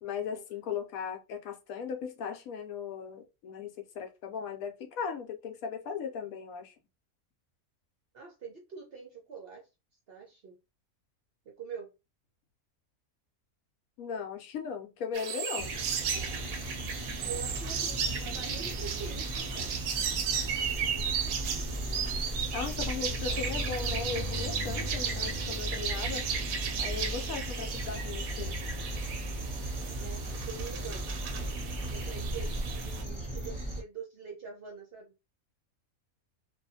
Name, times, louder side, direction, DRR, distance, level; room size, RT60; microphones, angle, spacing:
voice 1, 0.0-6.7 14.0-15.7 22.5-26.3 26.8-28.6, left 6 dB, 75° left, 1.0 m, -37 dB
voice 2, 8.1-9.7 10.1-10.6 11.6-11.9 17.2-19.9 23.3-23.4 29.9-31.1 31.9-35.1, right 5 dB, 55° right, 0.7 m, -44 dB
sound 1, 15.1-33.0, right 7 dB, 80° right, 1.0 m, -35 dB
sound 2, 15.6-33.8, right 1 dB, 15° right, 0.9 m, -36 dB
sound 3, 23.2-27.8 31.1-31.7, left 2 dB, 40° left, 0.5 m, -44 dB
2.6 x 2.4 x 2.6 m
omnidirectional pair, 1.5 m